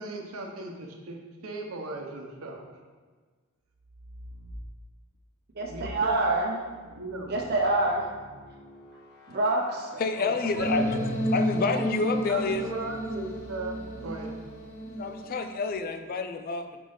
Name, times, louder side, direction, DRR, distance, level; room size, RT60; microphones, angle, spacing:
voice 1, 0.0-2.6 5.7-6.3 6.9-7.3 10.2-11.1 11.7-14.3, right 2 dB, 85° right, 2 dB, 0.8 m, -37 dB
sound 1, 3.7-4.7 5.5-11.5, left 2 dB, 85° left, 1.0 m, -46 dB
voice 2, 5.6-6.6 7.3-8.1 9.3-10.0, right 2 dB, 50° right, -1 dB, 0.7 m, -26 dB
voice 3, 10.0-11.0 11.3-12.8 15.0-16.8, left 4 dB, 45° left, 8 dB, 0.4 m, -29 dB
sound 2, 10.5-15.7, right 1 dB, 15° left, 1.0 m, -32 dB
5.1 x 3.4 x 5.4 m, 1.4 s
head